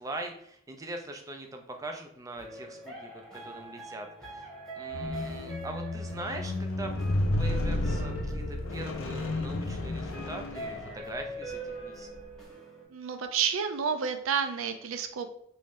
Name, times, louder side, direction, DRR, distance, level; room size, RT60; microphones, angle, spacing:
voice 1, 0.0-6.9 7.4-12.1, right 2 dB, 15° right, 3 dB, 0.4 m, -42 dB
sound 1, 2.4-12.8, right 1 dB, 5° left, 1.1 m, -43 dB
Squeak, 4.9-11.3 12.0-12.2, left 1 dB, 75° left, 0.5 m, -32 dB
voice 2, 12.9-15.3, right 7 dB, 75° right, 8 dB, 0.4 m, -30 dB
3.0 x 2.6 x 3.5 m, 0.70 s
head